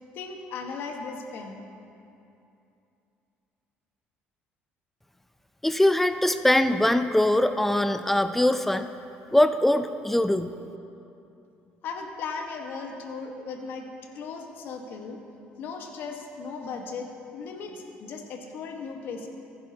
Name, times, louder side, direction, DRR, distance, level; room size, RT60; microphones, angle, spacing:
voice 1, 0.1-1.6 11.8-13.9 14.1-15.2 15.6-19.3, left 4 dB, 65° left, 3 dB, 1.3 m, -37 dB
voice 2, 5.6-8.9 9.3-10.5, left 1 dB, 5° left, 10 dB, 0.5 m, -22 dB
15.0 x 10.5 x 2.8 m, 2.7 s
cardioid pair, 100°, 4 cm